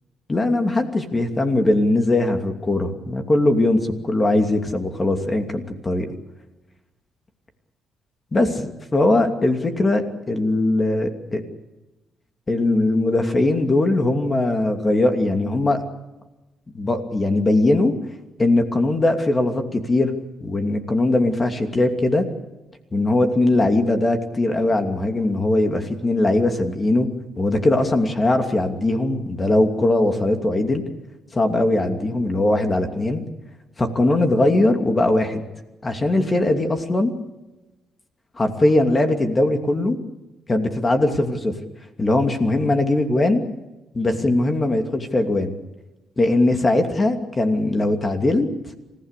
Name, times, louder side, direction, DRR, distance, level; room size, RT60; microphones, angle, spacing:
voice 1, 0.3-6.1 8.3-11.4 12.5-15.8 16.7-17.9 18.4-20.1 20.4-22.3 22.9-27.1 27.4-30.8 31.3-33.2 33.8-35.4 35.8-37.1 38.4-40.0 40.5-41.5 42.0-43.4 43.9-45.6 46.2-48.5, left 2 dB, 25° left, 5 dB, 2.7 m, -20 dB
28.0 x 15.5 x 8.4 m, 1.0 s
cardioid pair, 90°, 0 cm